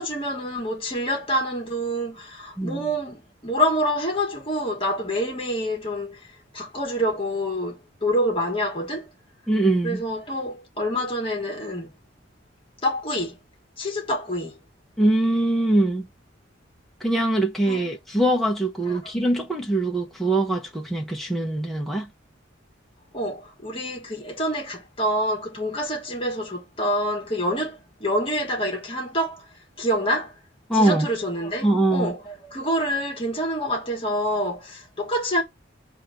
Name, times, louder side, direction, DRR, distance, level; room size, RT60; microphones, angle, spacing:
voice 1, 0.0-9.1 9.8-11.9 12.8-13.4 13.8-14.6 17.7-17.8 18.9-19.1 23.1-29.5 29.8-30.3 30.7-35.4, equal, 30° left, 1.5 m, -27 dB
voice 2, 9.5-10.0 15.0-16.1 17.0-22.1 30.7-31.1 31.6-32.1, right 1 dB, ahead, 1.0 m, -22 dB
7.1 x 2.8 x 5.8 m
head